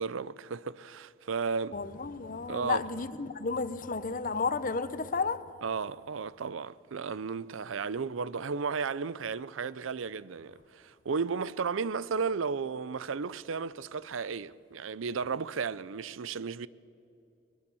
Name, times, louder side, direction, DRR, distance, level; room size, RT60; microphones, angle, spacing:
voice 1, 0.0-1.8 2.5-2.8 5.6-16.7, right 5 dB, 85° right, 0.5 m, -34 dB
voice 2, 1.7-5.4, left 4 dB, 45° left, 0.8 m, -32 dB
21.5 x 20.0 x 7.0 m
head